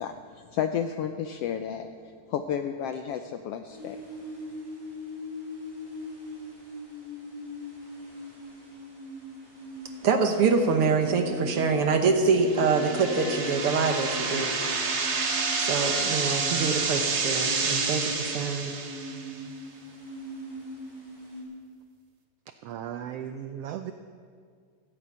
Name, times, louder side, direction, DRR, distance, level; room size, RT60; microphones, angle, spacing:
voice 1, 0.0-1.9 2.3-4.0, left 8 dB, 80° left, 7 dB, 1.4 m, -32 dB
sound 1, 3.7-21.4, left 1 dB, 10° right, 4.7 m, -41 dB
voice 2, 10.0-14.8 15.6-18.8, right 4 dB, 60° right, 5 dB, 1.7 m, -25 dB
sound 2, 12.4-19.4, right 4 dB, 45° right, 1.5 m, -29 dB
Wind instrument woodwind instrument, 12.5-17.1, left 1 dB, 50° left, 4.2 m, -41 dB
voice 3, 22.6-23.9, right 10 dB, 80° right, 8 dB, 1.4 m, -36 dB
15.0 x 11.0 x 8.5 m, 2.1 s
omnidirectional pair, 3.3 m